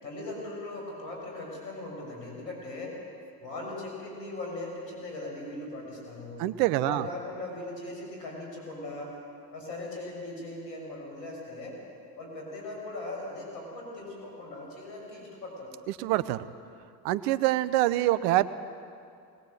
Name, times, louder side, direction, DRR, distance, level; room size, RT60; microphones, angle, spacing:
voice 1, 0.0-3.0 3.4-6.4 6.8-9.1 9.5-11.8 12.2-15.7, left 2 dB, 80° left, -1 dB, 6.9 m, -39 dB
voice 2, 6.4-7.1 16.0-16.5 17.0-18.5, right 15 dB, 70° right, 15 dB, 1.0 m, -25 dB
20.5 x 20.0 x 8.0 m, 2.3 s
hypercardioid pair, 60°, 50 cm